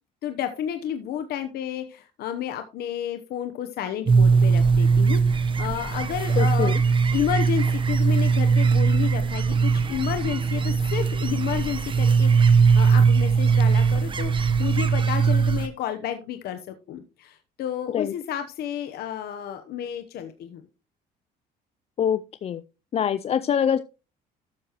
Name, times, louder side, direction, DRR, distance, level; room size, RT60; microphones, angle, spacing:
voice 1, 0.2-6.7 7.1-20.6, left 10 dB, 70° left, 8 dB, 0.9 m, -31 dB
sound 1, 4.1-15.7, right 5 dB, 30° right, 0.9 m, -20 dB
voice 2, 6.4-6.8 17.9-18.1 22.0-22.6 22.9-23.8, left 8 dB, 35° left, 14 dB, 0.4 m, -24 dB
13.0 x 6.4 x 2.9 m, 0.31 s
cardioid pair, 110°, 17 cm